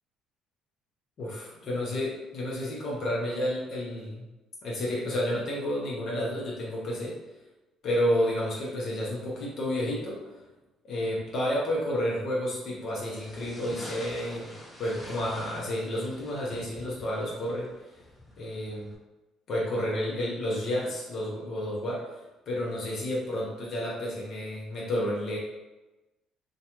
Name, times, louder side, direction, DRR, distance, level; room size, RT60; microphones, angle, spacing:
voice 1, 1.2-4.2 4.6-7.1 7.8-10.2 10.8-14.5 14.8-17.7 18.4-18.9 19.5-22.0 22.5-25.4, equal, 60° left, -4 dB, 0.7 m, -30 dB
sound 1, 13.0-19.0, left 1 dB, 5° left, 0.9 m, -47 dB
2.4 x 2.2 x 2.9 m, 1.1 s
supercardioid pair, 70°, 0 cm